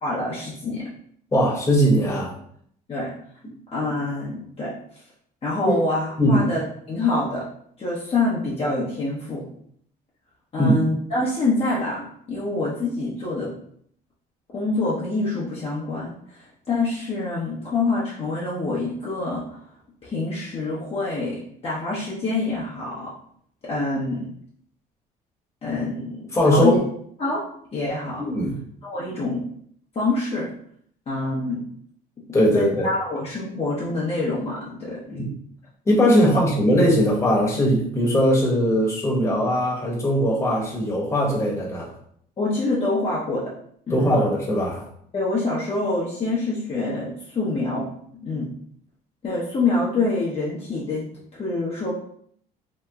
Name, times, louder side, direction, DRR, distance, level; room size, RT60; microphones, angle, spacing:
voice 1, 0.0-0.9 2.9-3.1 3.7-4.7 5.4-7.5 7.8-9.5 10.5-13.5 14.5-19.6 20.0-23.1 23.6-24.3 25.6-26.8 27.2-27.4 27.7-28.3 28.8-29.4 29.9-30.5 31.1-31.6 32.3-35.2 36.3-36.4 42.4-43.5 43.9-44.2 45.1-47.9 48.2-48.5 49.2-51.9, left 2 dB, 35° left, -6 dB, 0.8 m, -26 dB
voice 2, 1.3-2.3 5.6-5.8 6.2-6.5 10.6-10.8 26.3-26.8 28.2-28.6 32.3-32.9 35.1-35.3 35.9-41.9 43.9-44.8, equal, 15° left, -4 dB, 1.1 m, -20 dB
2.9 x 2.1 x 3.5 m, 0.64 s
cardioid pair, 110°, 17 cm